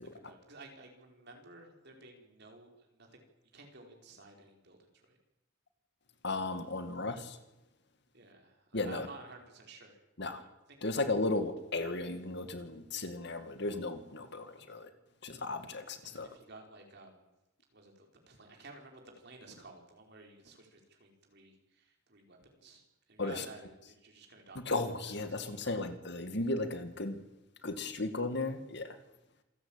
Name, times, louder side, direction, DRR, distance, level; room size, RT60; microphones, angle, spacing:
voice 1, 0.1-3.2 3.5-5.2 8.1-10.0 10.3-10.9 16.0-17.3 17.7-22.8 23.1-24.7 25.3-25.8, right 3 dB, 55° right, 2 dB, 5.0 m, -54 dB
voice 2, 6.2-7.4 8.7-9.1 10.2-10.4 10.8-14.9 15.2-16.3 23.2-23.5 24.6-27.2 27.6-29.0, left 2 dB, 60° left, 9 dB, 2.2 m, -35 dB
27.5 x 15.5 x 9.0 m, 0.95 s
head